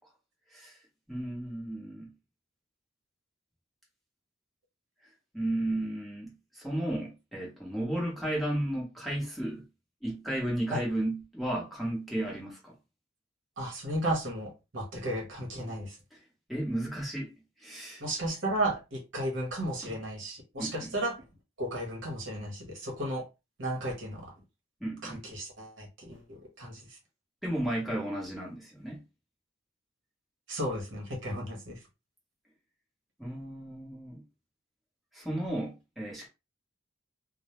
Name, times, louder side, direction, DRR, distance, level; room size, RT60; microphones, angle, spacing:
voice 1, 1.1-2.1 5.3-9.6 10.0-12.7 16.5-17.3 17.6-18.0 19.8-19.9 20.6-20.9 24.8-25.2 27.4-29.0 33.2-34.2 35.1-36.3, right 1 dB, ahead, 0.7 m, -33 dB
voice 2, 13.6-16.0 18.0-21.2 21.6-23.2 23.6-24.3 25.0-26.8 30.5-31.7, right 1 dB, 60° right, 0.8 m, -34 dB
2.2 x 2.0 x 2.9 m
head